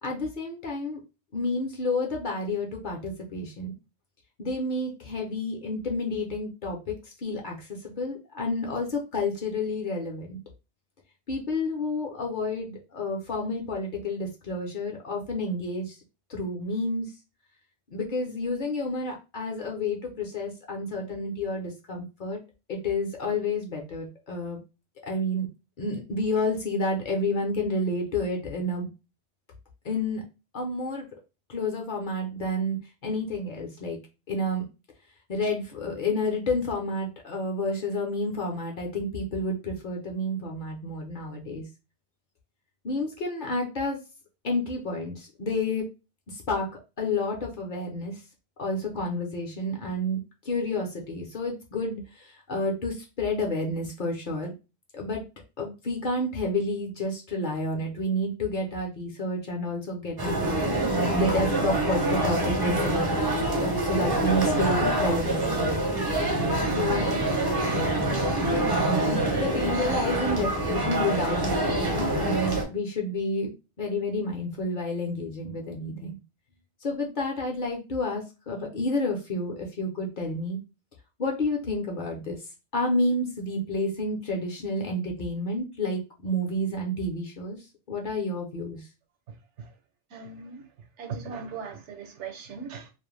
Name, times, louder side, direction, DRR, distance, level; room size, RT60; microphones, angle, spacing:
voice 1, 0.0-1.0 1.3-3.7 4.4-10.4 11.3-16.0 16.3-17.1 17.9-22.4 22.7-24.6 25.0-25.5 25.8-28.9 29.8-30.2 30.5-31.1 31.5-34.0 34.3-34.7 35.3-41.6 42.8-44.0 44.4-45.9 46.3-46.7 47.0-48.2 48.6-50.2 50.4-54.5 54.9-55.2 55.6-60.6 61.1-63.2 63.6-65.8 66.7-67.1 68.4-73.5 73.8-76.2 76.8-80.6 81.2-82.4 82.7-87.6 87.9-88.8, left 2 dB, 55° left, 0.6 m, -30 dB
sound 1, 60.2-72.6, right 1 dB, 30° right, 0.4 m, -25 dB
voice 2, 90.1-90.7 91.0-92.9, right 5 dB, 85° right, 1.0 m, -38 dB
2.4 x 2.1 x 3.1 m
omnidirectional pair, 1.2 m